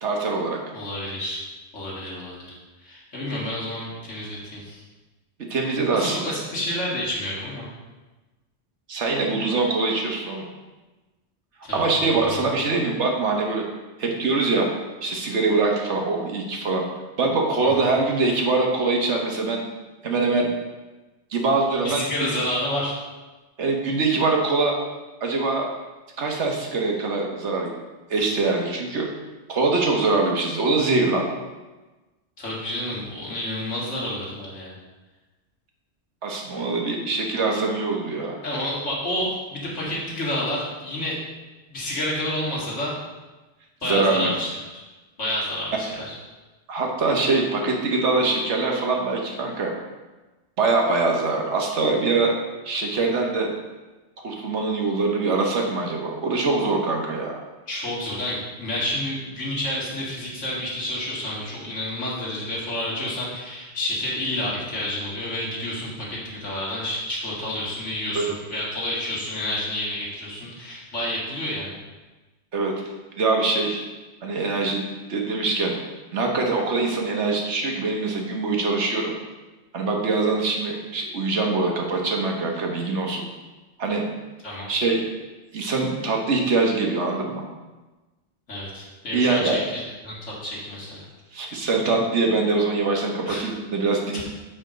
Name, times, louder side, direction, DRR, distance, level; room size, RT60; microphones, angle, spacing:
voice 1, 0.0-0.6 5.5-6.3 8.9-10.4 11.7-13.6 14.0-14.7 15.0-16.8 17.2-19.6 20.0-20.5 21.3-22.0 22.3-22.4 23.6-24.7 25.2-25.6 26.2-27.7 28.1-29.1 29.5-31.3 36.2-38.4 43.8-44.3 46.7-49.7 50.6-52.3 52.6-53.5 54.2-57.4 68.1-68.3 72.5-72.7 73.2-73.8 74.2-74.8 75.1-75.7 76.1-79.1 79.7-83.3 83.8-84.0 84.7-85.0 85.5-87.5 89.1-89.6 91.3-94.2, right 3 dB, 75° right, 1 dB, 1.5 m, -23 dB
voice 2, 0.7-1.4 1.7-2.5 2.8-4.8 5.6-7.7 11.6-12.4 21.8-22.9 32.4-34.8 38.4-41.2 41.7-42.9 43.8-44.8 45.2-46.2 57.7-71.8 84.4-84.7 88.5-91.0 93.3-93.4 94.1-94.2, left 1 dB, 90° left, -6 dB, 2.4 m, -29 dB
7.1 x 5.1 x 5.1 m, 1.2 s
omnidirectional pair, 1.2 m